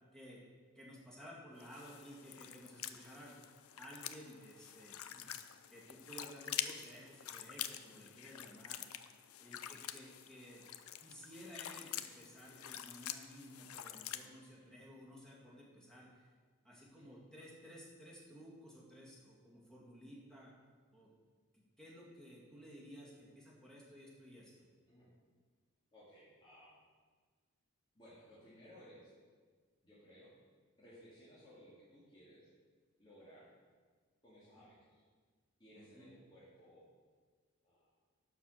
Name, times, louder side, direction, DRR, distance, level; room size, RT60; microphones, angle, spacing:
voice 1, 0.1-0.4 0.7-3.4 3.8-5.0 5.7-8.8 9.4-10.7 11.0-16.3 16.6-20.5 20.9-21.1 21.5-24.7 34.6-34.7 35.8-36.1, equal, 5° left, -5 dB, 2.3 m, -55 dB
sound 1, 1.6-14.3, left 11 dB, 85° left, 0.5 m, -47 dB
voice 2, 25.9-26.7 27.9-29.1 29.8-30.3 30.8-32.5 33.0-33.5 34.2-35.0 35.6-36.9 37.6-37.9, equal, 25° left, -10 dB, 2.1 m, -60 dB
11.0 x 4.9 x 6.5 m, 1.5 s
head